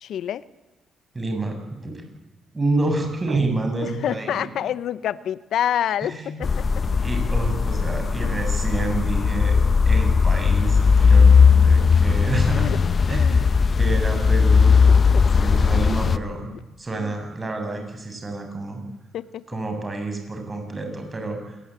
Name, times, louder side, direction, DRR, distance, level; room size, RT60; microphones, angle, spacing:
voice 1, 0.0-0.4 3.8-6.6 8.2-8.5 12.5-12.8 13.1-13.5 14.8-15.3 16.5-16.6 17.0-17.2 18.9-19.4, left 10 dB, 70° left, 16 dB, 0.9 m, -28 dB
voice 2, 1.1-1.6 1.8-1.9 2.5-4.5 6.0-6.5 7.0-9.6 9.9-12.7 13.1-13.5 13.8-14.8 15.3-16.5 16.8-18.8 19.5-21.6, right 2 dB, 25° right, 5 dB, 7.3 m, -28 dB
sound 1, 3.3-4.7, right 7 dB, 90° right, 1.5 m, -34 dB
sound 2, 6.4-16.2, left 5 dB, 40° left, 1.0 m, -17 dB
26.5 x 20.0 x 9.1 m, 1.1 s
cardioid pair, 90°, 0 cm